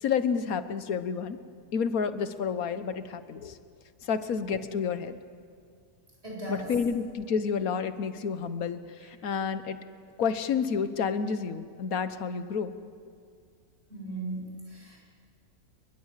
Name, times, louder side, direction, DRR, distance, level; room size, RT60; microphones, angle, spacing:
voice 1, 0.0-1.4 1.7-3.5 4.1-5.2 6.5-8.8 9.2-9.8 10.2-12.7, left 6 dB, 70° left, 12 dB, 1.5 m, -29 dB
voice 2, 6.2-6.7 13.9-15.0, right 2 dB, 40° right, -3 dB, 8.4 m, -38 dB
28.5 x 22.0 x 7.5 m, 2.3 s
omnidirectional pair, 1.6 m